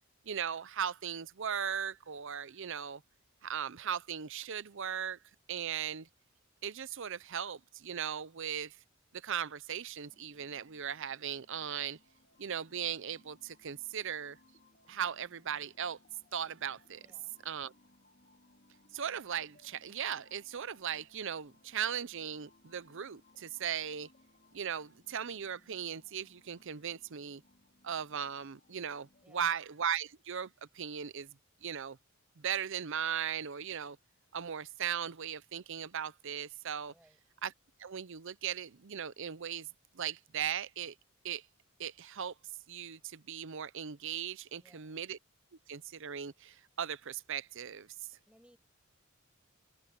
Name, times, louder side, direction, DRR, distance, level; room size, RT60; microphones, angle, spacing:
voice 1, 0.3-3.0 3.4-5.2 5.5-6.1 6.6-8.8 9.1-12.0 12.4-14.4 14.9-16.0 16.3-17.0 17.4-17.7 18.9-24.1 24.5-27.4 27.8-31.4 31.6-32.0 32.4-34.0 34.3-36.9 37.4-37.5 37.8-39.7 39.9-40.9 41.2-41.5 41.8-42.3 42.7-45.2 45.7-47.9, right 8 dB, 60° right, 0.7 m, -38 dB
sound 1, 10.0-29.2, left 2 dB, 45° left, 4.1 m, -66 dB
voice 2, 17.0-17.3 29.2-29.6 36.9-37.2 44.5-45.0 48.3-48.6, equal, 5° right, 7.5 m, -64 dB
open air
head